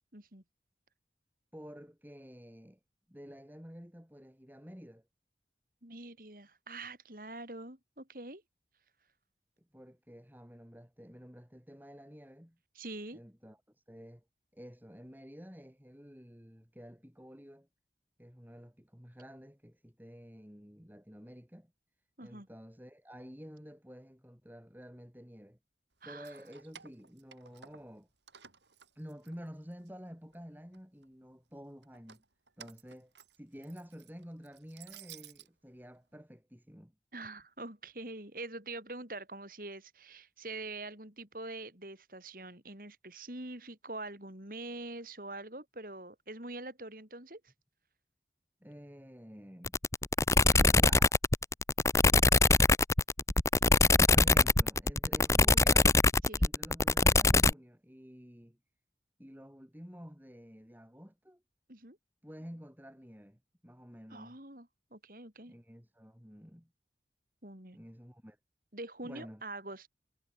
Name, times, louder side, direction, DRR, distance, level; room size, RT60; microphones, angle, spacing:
voice 1, 0.1-0.4 5.8-8.4 12.7-13.2 22.2-22.5 26.0-26.4 37.1-47.4 56.2-56.4 61.7-62.0 64.1-65.5 67.4-67.8 68.7-69.9, right 2 dB, 50° right, 4.7 m, -44 dB
voice 2, 1.5-2.8 3.1-5.1 9.6-12.6 13.1-13.6 13.9-14.2 14.5-17.7 18.2-21.7 22.2-25.6 26.0-28.1 29.0-32.2 32.6-33.1 33.4-36.9 48.6-49.7 50.7-51.2 53.8-55.9 56.4-58.6 59.2-61.4 62.2-64.4 65.5-66.7 67.7-68.4 69.0-69.4, equal, 10° right, 4.1 m, -50 dB
Keys jangling, 26.1-28.0 28.3-29.9 30.3-31.1 31.8-35.5, right 8 dB, 90° right, 7.8 m, -55 dB
sound 1, 49.7-57.5, left 3 dB, 15° left, 0.6 m, -23 dB
head